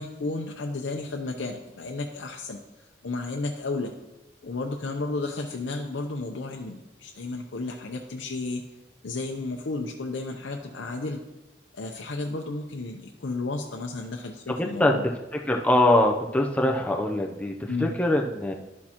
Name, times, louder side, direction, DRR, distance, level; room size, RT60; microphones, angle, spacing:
voice 1, 0.0-2.6 3.0-3.9 4.4-8.6 9.0-11.2 11.7-15.1 17.7-18.0, left 3 dB, 85° left, 1 dB, 0.7 m, -32 dB
voice 2, 14.6-14.9 15.5-18.5, left 1 dB, 10° left, 1 dB, 0.5 m, -23 dB
11.5 x 6.4 x 2.9 m, 1.0 s
head